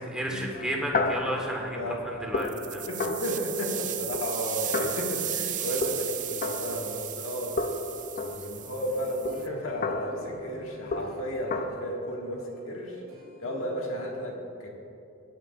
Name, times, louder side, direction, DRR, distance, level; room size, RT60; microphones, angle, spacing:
voice 1, 0.1-2.8, equal, 5° right, -1 dB, 1.6 m, -32 dB
sound 1, 0.5-7.3 7.6-11.6, left 3 dB, 45° left, 0.6 m, -34 dB
sound 2, 2.4-9.5, right 11 dB, 40° right, 0.5 m, -35 dB
voice 2, 2.9-7.6 8.2-13.0 13.4-14.7, equal, 75° left, -2 dB, 2.1 m, -33 dB
sound 3, 8.4-14.1, right 1 dB, 80° right, 2.4 m, -48 dB
22.0 x 8.8 x 2.6 m, 2.6 s
head